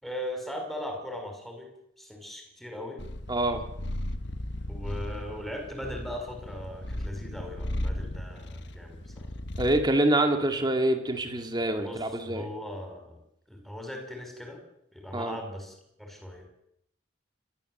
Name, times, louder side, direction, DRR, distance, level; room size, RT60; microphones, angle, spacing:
voice 1, 0.0-3.1 4.7-9.3 11.8-13.2 13.5-14.6 14.9-16.5, left 1 dB, ahead, 3 dB, 5.3 m, -39 dB
Purr, 3.0-9.9, left 1 dB, 60° left, 1.5 m, -36 dB
voice 2, 3.3-3.6 9.6-12.5 15.1-15.4, right 1 dB, 20° right, 5 dB, 2.2 m, -26 dB
28.5 x 12.5 x 7.9 m, 0.78 s
head